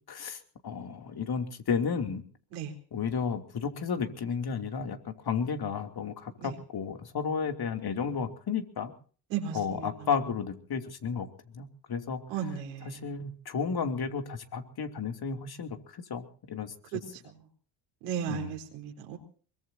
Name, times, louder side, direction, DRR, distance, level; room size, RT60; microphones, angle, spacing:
voice 1, 0.1-2.2 2.9-8.9 9.5-11.3 11.5-12.2 12.8-16.7 18.3-18.5, left 6 dB, 45° left, 6 dB, 2.9 m, -33 dB
voice 2, 9.3-10.1 12.3-13.0 16.9-17.2 18.0-19.2, right 8 dB, 90° right, 3 dB, 4.0 m, -35 dB
23.5 x 22.5 x 2.8 m, 0.42 s
supercardioid pair, 70°, 50 cm